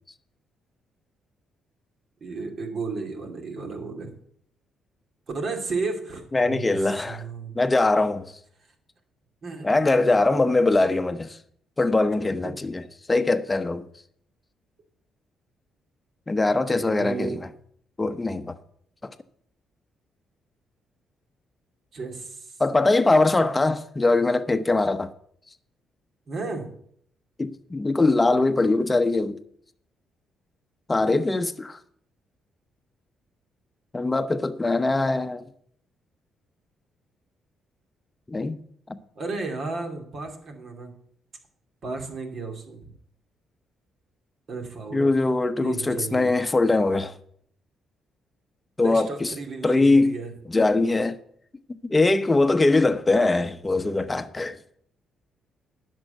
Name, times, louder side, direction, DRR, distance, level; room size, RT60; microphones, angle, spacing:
voice 1, 2.2-4.2 5.3-7.5 9.4-10.1 12.4-12.6 16.7-17.4 21.9-22.6 26.3-26.7 39.2-40.9 41.8-42.9 44.5-45.1 45.6-46.4 48.8-50.3, right 4 dB, 55° right, 2.6 m, -33 dB
voice 2, 6.3-7.3 7.5-8.3 9.6-11.4 11.8-12.8 13.1-13.8 16.3-17.5 18.0-18.6 22.6-25.1 27.4-29.4 30.9-31.8 33.9-35.4 38.3-38.6 38.9-39.0 44.9-47.1 48.8-49.3 49.6-50.1 50.5-51.2 51.7-54.6, left 2 dB, 20° left, 0.9 m, -22 dB
10.5 x 6.4 x 7.9 m
cardioid pair, 90°, 0 cm